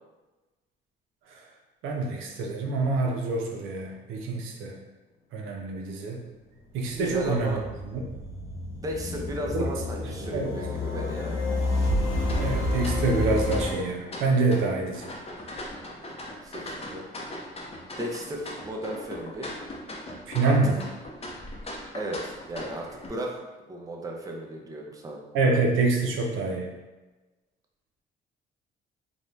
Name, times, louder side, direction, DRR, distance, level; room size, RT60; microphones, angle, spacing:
voice 1, 1.8-4.8 5.3-6.2 6.7-7.6 7.8-8.0 9.5-9.7 10.0-10.5 12.4-15.1 20.3-20.7 25.3-26.7, right 3 dB, 85° right, 0 dB, 0.5 m, -26 dB
sound 1, 6.4-13.7, left 2 dB, 85° left, 0.7 m, -29 dB
voice 2, 6.9-7.6 8.8-11.3 16.4-17.0 18.0-19.5 20.4-20.8 21.9-23.3 23.7-25.2, right 1 dB, 15° right, 0 dB, 0.5 m, -35 dB
sound 2, 12.2-23.1, left 1 dB, 30° left, 0.5 m, -40 dB
2.6 x 2.1 x 3.1 m, 1.2 s
cardioid pair, 90°, 20 cm